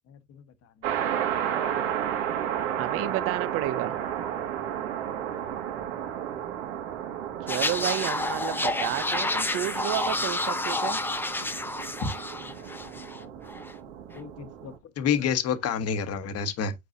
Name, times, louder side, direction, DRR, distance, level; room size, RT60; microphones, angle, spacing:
voice 1, 0.1-0.4 5.3-5.4 12.0-12.1 12.4-12.7 13.1-13.3 14.1-16.7, left 7 dB, 40° left, 1.2 m, -29 dB
sound 1, 0.8-14.8, right 10 dB, 80° right, 1.8 m, -33 dB
voice 2, 2.8-3.9 7.4-11.0, right 14 dB, 40° right, 0.4 m, -31 dB
sound 2, 7.5-13.2 13.5-13.7, left 2 dB, 5° left, 0.6 m, -29 dB
7.9 x 4.7 x 2.6 m
supercardioid pair, 105°, 36 cm